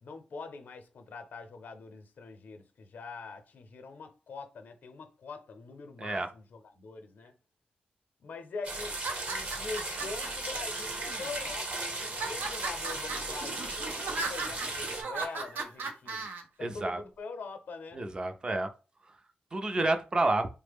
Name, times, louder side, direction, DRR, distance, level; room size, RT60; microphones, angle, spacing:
voice 1, 0.0-7.3 8.2-9.0 9.3-16.3 16.6-18.0, left 4 dB, 65° left, 0.7 m, -43 dB
sound 1, 8.6-15.0, right 2 dB, 50° right, 0.9 m, -36 dB
sound 2, 8.9-10.3 11.0-11.5 12.0-16.4, right 4 dB, 80° right, 0.6 m, -37 dB
voice 2, 16.6-17.0 17.9-18.7 19.5-20.5, right 2 dB, 25° right, 0.5 m, -29 dB
3.3 x 2.1 x 3.5 m
wide cardioid pair, 130°, 3 cm